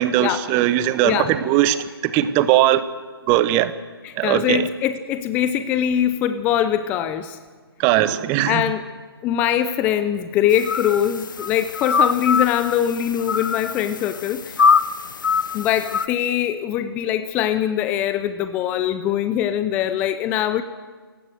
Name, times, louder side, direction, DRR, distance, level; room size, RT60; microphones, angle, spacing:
voice 1, 0.0-2.8 3.3-3.7 4.2-4.6 7.8-8.6, right 13 dB, 15° right, 14 dB, 0.9 m, -19 dB
voice 2, 1.0-1.4 4.0-7.4 8.5-8.8 9.2-14.6 15.5-20.6, left 10 dB, 10° left, 12 dB, 0.7 m, -22 dB
sound 1, 10.5-16.1, left 5 dB, 50° left, 1.1 m, -23 dB
28.5 x 16.5 x 8.0 m, 1.4 s
figure-of-eight pair, 150°, 13 cm